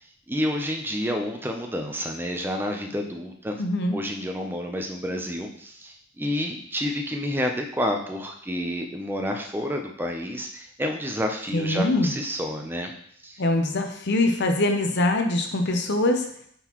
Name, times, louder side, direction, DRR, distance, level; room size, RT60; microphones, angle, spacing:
voice 1, 0.3-3.6 3.9-12.9 13.2-13.4, equal, 10° right, 3 dB, 0.6 m, -29 dB
voice 2, 3.6-4.0 11.5-12.1 13.4-16.3, left 2 dB, 55° left, 5 dB, 0.8 m, -23 dB
8.1 x 3.9 x 3.0 m, 0.65 s
head